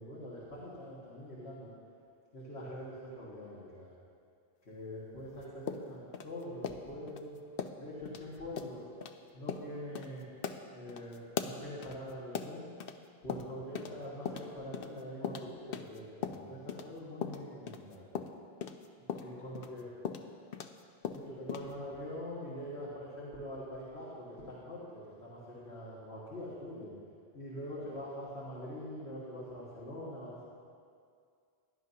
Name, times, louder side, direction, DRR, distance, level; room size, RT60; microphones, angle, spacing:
voice 1, 0.0-1.7 2.3-3.9 4.7-7.4 7.8-8.8 9.3-10.3 10.7-12.7 13.2-18.1 19.1-19.9 21.1-26.9 27.3-30.4, equal, 85° left, -9 dB, 2.1 m, -44 dB
sound 1, 5.7-7.2 7.6-7.8 8.1-8.2 8.6-8.7 9.0-9.1 9.5-9.7 10.0-10.1 10.4-13.0 13.3-14.0 14.3-16.9 17.2-20.8 21.0-21.7, left 7 dB, 65° left, 0.8 m, -39 dB
16.5 x 11.0 x 2.8 m, 2.2 s
omnidirectional pair, 1.0 m